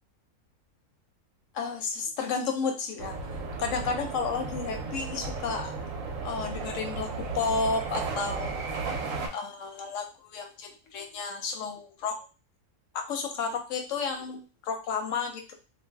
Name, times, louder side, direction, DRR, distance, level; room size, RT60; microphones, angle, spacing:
voice 1, 1.5-3.1 3.6-5.7 6.2-8.5 9.3-12.2 12.9-15.5, left 5 dB, 70° left, 4 dB, 0.8 m, -32 dB
sound 1, 3.0-9.3, right 4 dB, 70° right, 0.9 m, -34 dB
2.5 x 2.0 x 3.3 m, 0.32 s
omnidirectional pair, 1.6 m